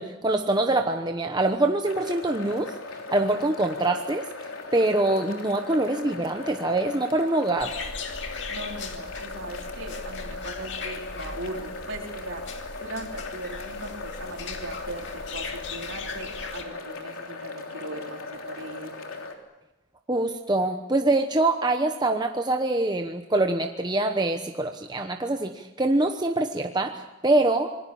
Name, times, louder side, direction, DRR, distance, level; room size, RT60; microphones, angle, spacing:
voice 1, 0.0-2.7 3.1-4.2 4.7-7.7 20.1-26.9 27.2-27.7, right 2 dB, 20° right, 5 dB, 1.0 m, -24 dB
sound 1, 1.8-19.3, left 3 dB, 90° left, 3.3 m, -38 dB
sound 2, 7.6-16.6, left 4 dB, 60° left, 2.4 m, -39 dB
voice 2, 8.5-12.4 12.8-18.9, right 2 dB, 65° right, 1 dB, 4.0 m, -39 dB
27.0 x 20.5 x 7.1 m, 1.0 s
head